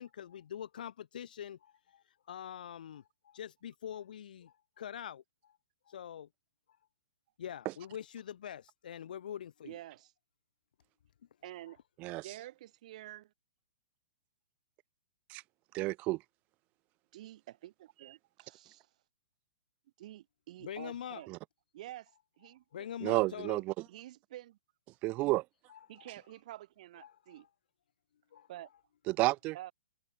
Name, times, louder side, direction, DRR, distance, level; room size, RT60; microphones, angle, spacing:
voice 1, 0.0-5.6 5.9-6.3 7.4-9.8 20.6-21.2 22.7-23.6 25.7-26.1 27.0-27.4 28.3-28.5, left 9 dB, 70° left, 3.7 m, -44 dB
voice 2, 9.6-10.1 11.4-11.8 12.2-13.3 17.1-18.9 20.0-21.3 21.7-22.6 23.9-24.6 25.9-27.4 28.5-28.7 29.5-29.7, right 14 dB, 50° right, 3.4 m, -49 dB
voice 3, 15.7-16.2 21.3-21.4 23.0-23.7 25.0-25.4 29.1-29.6, right 21 dB, 30° right, 1.1 m, -31 dB
hypercardioid pair, 145°, 5 cm